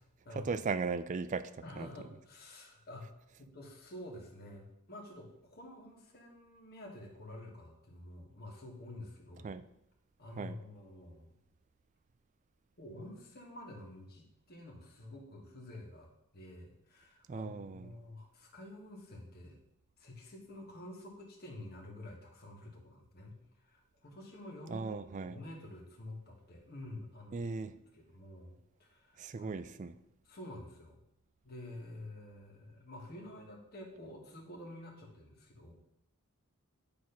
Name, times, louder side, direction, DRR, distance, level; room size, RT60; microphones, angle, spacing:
voice 1, 0.3-1.9 9.4-9.6 10.4-10.6 17.3-17.9 24.7-25.4 27.3-27.7 29.2-30.0, right 4 dB, 35° right, 13 dB, 0.3 m, -37 dB
voice 2, 1.6-3.1 3.4-9.5 10.2-11.4 12.8-19.6 20.0-25.0 25.2-27.4 27.9-29.6 30.3-31.0 31.4-35.7, left 1 dB, 45° left, 0 dB, 1.4 m, -49 dB
8.6 x 3.0 x 5.7 m, 0.82 s
head